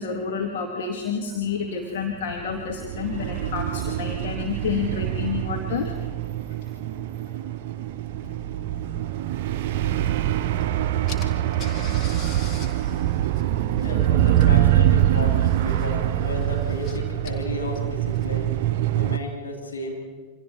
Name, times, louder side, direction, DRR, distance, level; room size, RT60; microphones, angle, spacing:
voice 1, 0.0-5.9 8.3-8.4 9.5-9.6, left 6 dB, 55° left, 1 dB, 2.2 m, -29 dB
sound 1, 2.3-19.2, right 12 dB, 50° right, 0.7 m, -24 dB
Car / Engine, 10.6-10.7 11.1-18.5, left 4 dB, 30° left, 2.6 m, -44 dB
voice 2, 13.8-18.5 18.9-19.9, left 2 dB, 75° left, -2 dB, 7.3 m, -33 dB
28.0 x 25.5 x 4.5 m, 1.4 s
figure-of-eight pair, 90°, 0 cm